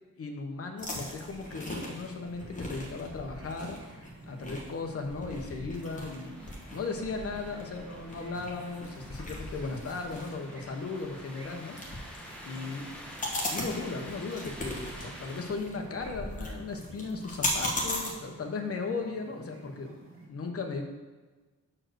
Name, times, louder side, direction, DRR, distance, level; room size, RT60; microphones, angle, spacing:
voice 1, 0.2-6.4 6.7-12.1 12.4-12.9 13.5-20.0 20.3-20.8, left 4 dB, 50° left, 3 dB, 1.0 m, -37 dB
sound 1, 0.8-18.1, left 1 dB, 25° left, 1.3 m, -39 dB
sound 2, 1.2-20.3, right 2 dB, 45° right, 1.7 m, -51 dB
sound 3, 5.7-15.5, equal, 5° left, 1.0 m, -48 dB
6.5 x 4.6 x 6.2 m, 1.3 s
wide cardioid pair, 170°, 30 cm